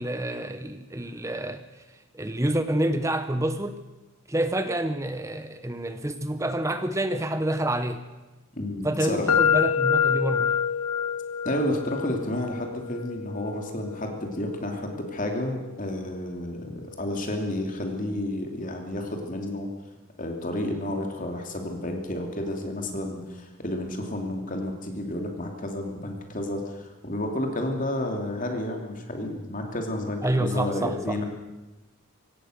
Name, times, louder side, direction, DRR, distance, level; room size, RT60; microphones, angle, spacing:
voice 1, 0.0-1.6 2.1-3.8 4.3-8.0 8.8-10.6 30.2-31.2, right 1 dB, 15° right, 10 dB, 0.8 m, -28 dB
voice 2, 8.5-9.5 11.4-19.7 20.2-31.2, left 1 dB, 35° left, 3 dB, 2.8 m, -31 dB
sound 1, 9.3-17.1, left 7 dB, 75° left, 1.3 m, -28 dB
24.5 x 17.0 x 6.6 m, 1.1 s
head